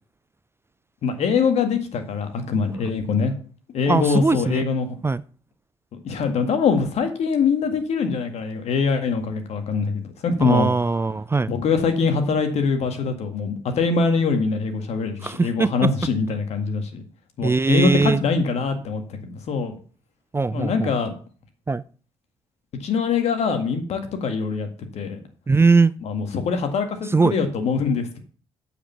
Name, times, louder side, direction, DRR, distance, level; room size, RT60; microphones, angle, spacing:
voice 1, 1.0-3.3 3.7-5.0 6.0-10.7 11.5-17.0 17.4-19.7 20.5-21.1 22.8-25.2 26.0-28.2, left 5 dB, 60° left, 7 dB, 1.9 m, -23 dB
voice 2, 3.9-4.6 5.0-5.2 10.4-11.5 15.2-15.7 17.4-18.2 20.3-20.9 21.7-21.8 25.5-25.9 27.1-27.3, right 4 dB, 20° right, 18 dB, 0.4 m, -20 dB
8.6 x 5.2 x 7.1 m, 0.42 s
hypercardioid pair, 45°, 12 cm